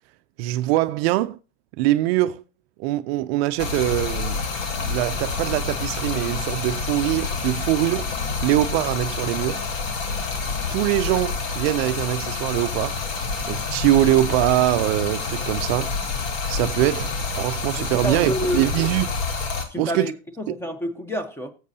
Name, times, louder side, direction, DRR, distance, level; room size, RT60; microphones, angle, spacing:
voice 1, 0.4-1.4 1.8-2.4 2.8-4.4 4.8-8.1 8.4-9.6 10.7-13.0 13.5-15.9 16.5-19.1 19.8-20.1 20.5-20.6, right 15 dB, 55° right, 0.5 m, -23 dB
Stream, 3.6-19.6, left 4 dB, 90° left, 2.1 m, -28 dB
voice 2, 17.8-18.6 19.7-21.5, equal, 5° left, 0.9 m, -28 dB
16.5 x 7.6 x 2.7 m
supercardioid pair, 135°, 38 cm